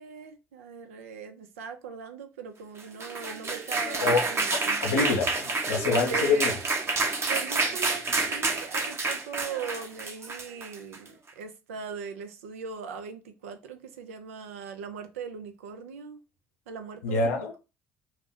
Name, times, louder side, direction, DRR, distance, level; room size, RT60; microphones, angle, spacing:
voice 1, 0.0-4.8 6.0-6.6 7.3-16.2 16.7-17.6, right 6 dB, 85° right, 0.4 m, -40 dB
sound 1, 2.8-11.1, right 3 dB, 35° right, 0.7 m, -29 dB
voice 2, 4.8-6.5 17.0-17.5, left 4 dB, 90° left, 0.6 m, -25 dB
2.4 x 2.1 x 3.5 m
hypercardioid pair, 60°, 7 cm